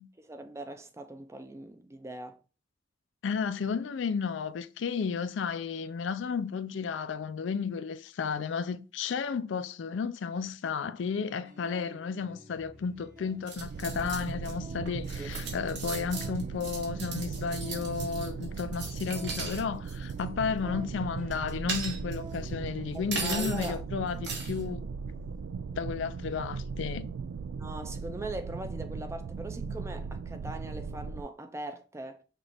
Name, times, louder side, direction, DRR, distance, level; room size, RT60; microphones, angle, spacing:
voice 1, 0.2-2.4 15.2-15.4 22.9-23.8 27.6-32.2, right 2 dB, 15° right, 0.4 m, -40 dB
voice 2, 3.2-24.9 25.8-27.1, left 5 dB, 85° left, 0.4 m, -33 dB
sound 1, 11.1-29.1, equal, 45° right, 1.2 m, -52 dB
Indoor Silverware Clinking Various, 13.5-14.5 14.9-19.6 19.9-20.2 21.3-22.4 23.1-23.7 24.2-24.6, right 4 dB, 70° right, 1.2 m, -37 dB
sound 2, 13.5-31.2, right 5 dB, 85° right, 0.3 m, -38 dB
5.9 x 2.4 x 3.3 m
head